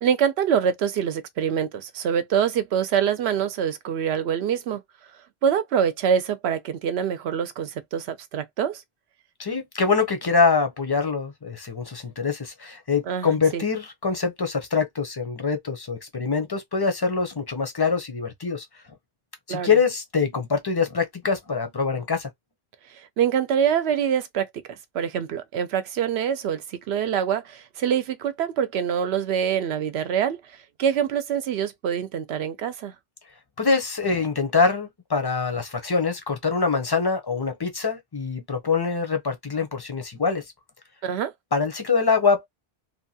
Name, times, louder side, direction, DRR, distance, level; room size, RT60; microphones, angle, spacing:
voice 1, 0.0-4.8 5.4-8.8 13.1-13.6 19.5-19.7 23.2-30.4 30.8-32.9 41.0-41.3, right 8 dB, 85° right, 0.8 m, -25 dB
voice 2, 9.4-18.7 19.5-22.3 33.6-40.4 41.5-42.5, left 5 dB, 30° left, 0.5 m, -24 dB
2.9 x 2.2 x 2.7 m
omnidirectional pair, 1.0 m